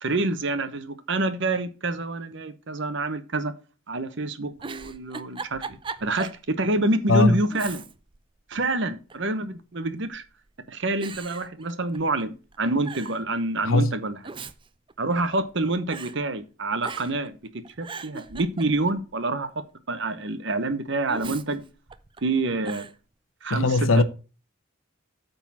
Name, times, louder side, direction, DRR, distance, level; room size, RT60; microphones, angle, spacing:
voice 1, 0.0-3.5 3.9-5.6 6.0-7.8 8.5-10.2 10.7-14.2 15.0-21.6 22.2-22.9 23.4-23.7 24.0-24.1, right 2 dB, 60° right, 1.0 m, -27 dB
Giggle, 4.6-6.4 6.8-6.9 7.5-8.2 8.5-9.3 10.1-10.5 11.0-12.2 12.5-12.6 12.8-13.2 14.0-15.6 15.9-16.2 16.8-17.3 17.6-19.0 21.1-22.2 22.6-23.0, right 5 dB, 25° right, 0.5 m, -39 dB
voice 2, 7.1-7.4 13.6-13.9 23.5-24.0, left 2 dB, 75° left, 0.9 m, -19 dB
9.0 x 4.0 x 7.2 m
head